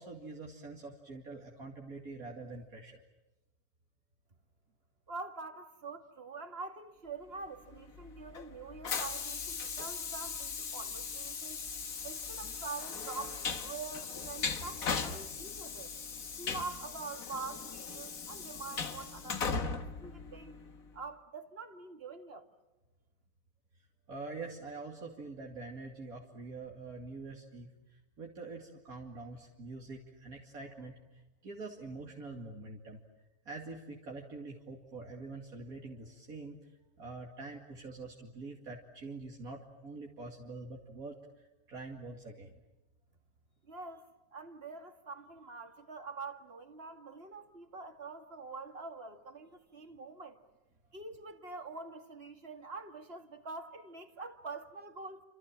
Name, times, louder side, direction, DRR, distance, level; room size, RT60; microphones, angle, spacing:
voice 1, 0.0-3.0 24.1-33.0 33.5-36.6 37.0-42.5, right 3 dB, 75° right, 2.9 m, -45 dB
voice 2, 5.1-11.6 12.0-15.9 16.4-20.5 20.9-22.4 43.7-44.0 44.3-50.4 50.9-55.2, right 4 dB, 40° right, 2.2 m, -45 dB
Train, 7.7-20.9, left 5 dB, 65° left, 1.9 m, -39 dB
29.0 x 27.5 x 7.5 m
omnidirectional pair, 1.5 m